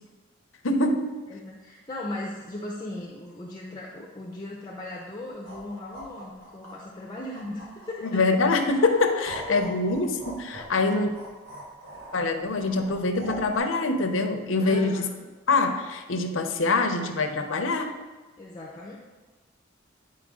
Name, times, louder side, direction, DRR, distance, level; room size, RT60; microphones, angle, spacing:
voice 1, 0.6-1.3 8.0-11.1 12.1-15.1 15.5-18.1, left 3 dB, 80° left, 6 dB, 0.7 m, -24 dB
voice 2, 1.3-8.2 9.2-9.6 14.6-15.1 18.4-19.0, left 1 dB, 20° left, -2 dB, 0.7 m, -38 dB
sound 1, 5.3-8.3 8.8-13.6, right 1 dB, 80° right, 1.9 m, -42 dB
9.3 x 4.5 x 3.7 m, 1.2 s
head